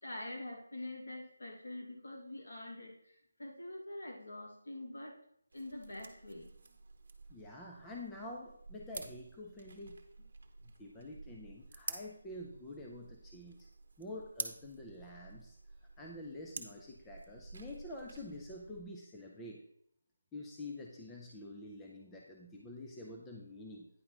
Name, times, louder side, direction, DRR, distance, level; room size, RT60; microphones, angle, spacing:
voice 1, 0.0-5.2 5.5-6.5, left 1 dB, 60° left, -1 dB, 2.8 m, -45 dB
sound 1, 5.5-18.8, right 3 dB, 35° right, 1.0 m, -50 dB
voice 2, 7.3-10.0 10.8-13.6 14.0-15.6 16.0-19.6 20.3-23.9, left 1 dB, 5° left, -2 dB, 0.4 m, -47 dB
9.5 x 3.8 x 6.0 m, 0.71 s
figure-of-eight pair, 180°, 0 cm